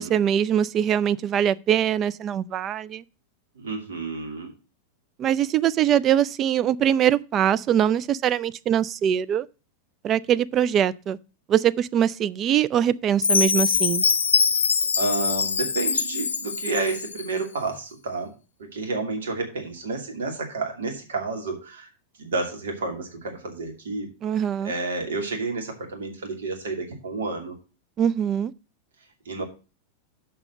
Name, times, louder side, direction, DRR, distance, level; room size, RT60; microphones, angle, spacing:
voice 1, 0.0-3.0 5.2-9.5 10.0-11.2 11.5-14.0 24.2-24.7 28.0-28.5, right 9 dB, 30° right, 0.4 m, -22 dB
voice 2, 3.5-4.5 15.0-18.3 18.6-21.9 22.2-24.1 24.6-27.6 29.2-29.4, right 3 dB, 60° right, 2.6 m, -30 dB
Chime, 13.2-17.3, left 5 dB, 70° left, 0.7 m, -23 dB
7.0 x 5.6 x 7.4 m
figure-of-eight pair, 90°, 0 cm